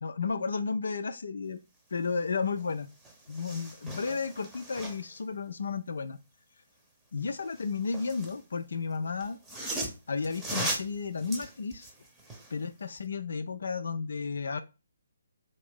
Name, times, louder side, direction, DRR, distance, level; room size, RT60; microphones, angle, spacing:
voice 1, 0.0-1.6 1.9-2.9 3.3-6.2 7.1-9.4 10.1-11.9 12.5-14.6, left 4 dB, 60° left, 10 dB, 0.3 m, -33 dB
sound 1, 2.6-2.7 3.0-5.2 7.3-8.4 9.2-12.6 13.0-13.1, right 1 dB, 10° right, 0.8 m, -38 dB
3.6 x 2.6 x 3.6 m, 0.30 s
figure-of-eight pair, 140°, 0 cm